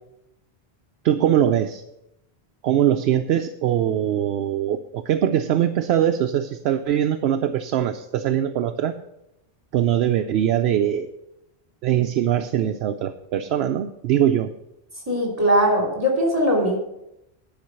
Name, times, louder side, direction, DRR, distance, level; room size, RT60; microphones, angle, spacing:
voice 1, 1.0-1.8 2.6-8.9 9.7-11.1 11.8-14.5, right 10 dB, 75° right, 8 dB, 0.8 m, -22 dB
voice 2, 15.1-16.8, equal, 30° right, 0 dB, 2.9 m, -20 dB
10.5 x 5.1 x 7.8 m, 0.87 s
omnidirectional pair, 1.1 m